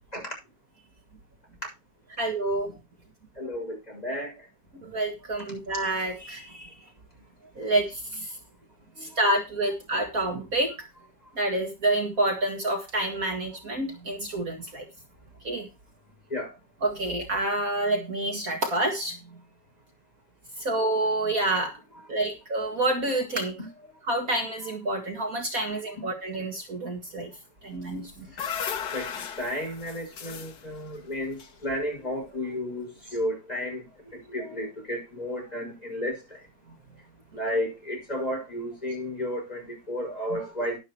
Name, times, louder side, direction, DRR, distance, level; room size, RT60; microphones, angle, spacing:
voice 1, 2.1-2.7 4.7-6.7 7.6-8.4 9.0-10.7 11.4-14.9 15.4-15.7 16.8-19.2 20.6-21.8 22.1-23.6 24.1-27.3 27.6-28.3 40.3-40.4, right 2 dB, 50° right, 2.4 m, -28 dB
voice 2, 3.4-4.3 9.0-9.1 16.3-16.5 28.4-28.5 28.9-29.1 29.4-33.8 34.1-36.2 37.3-40.8, left 1 dB, 20° left, 6.9 m, -32 dB
sound 1, 27.9-32.2, left 7 dB, 65° left, 1.6 m, -36 dB
11.5 x 11.5 x 3.2 m
omnidirectional pair, 1.9 m